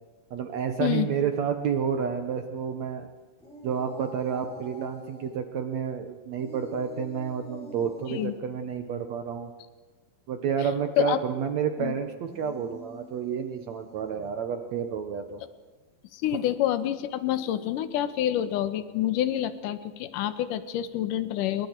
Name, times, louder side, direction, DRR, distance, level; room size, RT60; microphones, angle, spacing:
voice 1, 0.3-3.1 3.6-9.5 10.3-15.4, right 7 dB, 80° right, 7 dB, 1.5 m, -30 dB
sound 1, 3.4-5.4 6.4-8.3 12.1-14.4, right 1 dB, ahead, 6.8 m, -47 dB
voice 2, 16.1-21.7, left 12 dB, 65° left, 11 dB, 2.4 m, -27 dB
28.0 x 23.5 x 4.6 m, 1.4 s
omnidirectional pair, 4.6 m